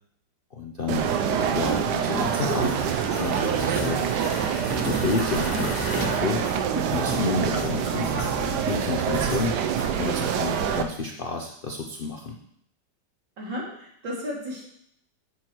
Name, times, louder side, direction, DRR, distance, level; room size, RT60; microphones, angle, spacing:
voice 1, 0.5-2.8 3.2-4.0 4.7-6.4 6.9-9.5 10.0-12.4, left 4 dB, 60° left, 1 dB, 0.5 m, -30 dB
sound 1, 0.9-10.8, right 8 dB, 70° right, 1.2 m, -26 dB
sound 2, 2.0-7.3, left 2 dB, 30° left, 1.0 m, -38 dB
sound 3, 2.1-10.1, right 1 dB, 10° right, 1.8 m, -36 dB
voice 2, 13.4-14.6, equal, 90° right, -4 dB, 3.0 m, -34 dB
8.3 x 4.6 x 6.0 m, 0.71 s
omnidirectional pair, 1.9 m